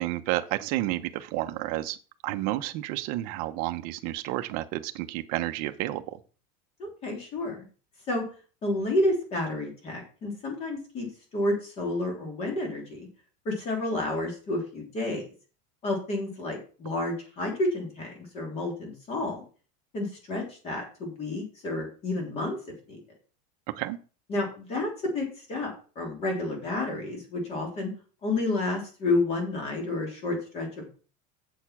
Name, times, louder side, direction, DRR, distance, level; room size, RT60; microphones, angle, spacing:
voice 1, 0.0-2.0 2.2-6.2 23.7-24.0, right 16 dB, 45° right, 9 dB, 0.8 m, -31 dB
voice 2, 6.8-7.6 8.1-8.2 8.6-11.1 11.3-13.1 13.4-15.3 15.8-19.4 19.9-22.6 22.9-23.0 24.3-27.9 28.2-31.0, left 2 dB, 30° left, 2 dB, 3.3 m, -30 dB
8.0 x 6.6 x 6.0 m, 0.37 s
cardioid pair, 175°, 21 cm